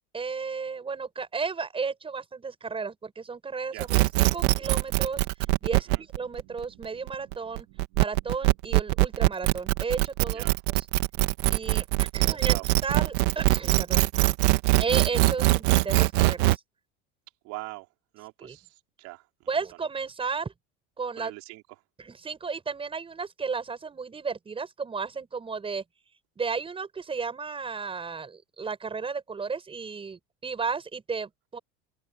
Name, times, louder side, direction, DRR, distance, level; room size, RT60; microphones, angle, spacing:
voice 1, 0.1-5.2 5.6-7.7 8.0-10.5 10.7-10.9 11.5-14.0 14.8-16.6 18.4-18.6 19.5-20.5 21.0-21.3 22.0-25.8 26.4-31.6, right 5 dB, 15° right, 7.2 m, -33 dB
sound 1, 3.8-16.6, right 20 dB, 80° right, 2.0 m, -22 dB
voice 2, 17.4-17.9 18.1-19.5 21.2-21.6, right 23 dB, 60° right, 4.6 m, -42 dB
open air
cardioid pair, 150°, 32 cm